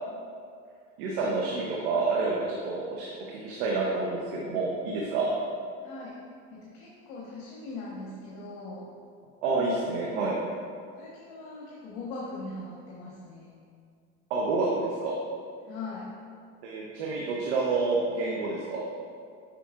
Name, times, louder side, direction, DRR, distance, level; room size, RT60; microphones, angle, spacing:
voice 1, 1.0-5.3 9.4-10.3 14.3-15.1 16.6-18.8, right 3 dB, 80° right, -3 dB, 0.9 m, -28 dB
voice 2, 5.8-6.1 6.5-8.9 9.5-10.4 10.9-13.6 15.6-16.1, left 3 dB, 65° left, -5 dB, 1.3 m, -40 dB
7.4 x 5.2 x 2.4 m, 2.3 s
supercardioid pair, 90°, 33 cm